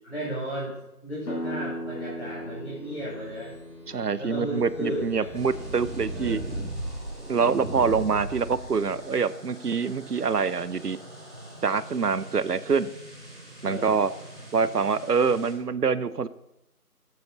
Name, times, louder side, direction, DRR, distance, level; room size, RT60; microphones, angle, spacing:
voice 1, 0.0-3.5 4.2-5.4 6.1-6.7 7.4-7.9 13.6-14.0, equal, 45° left, -7 dB, 2.8 m, -34 dB
sound 1, 1.2-6.8, equal, 85° left, 1.6 m, -39 dB
sound 2, 2.7-9.1, right 1 dB, 15° left, 2.0 m, -37 dB
voice 2, 3.9-6.4 7.3-11.0 11.6-12.9 13.6-14.1 14.5-16.3, right 5 dB, 80° right, 16 dB, 0.7 m, -25 dB
sound 3, 5.3-15.5, right 1 dB, 40° right, 4.4 m, -46 dB
14.0 x 7.7 x 4.0 m, 0.87 s
figure-of-eight pair, 170°, 47 cm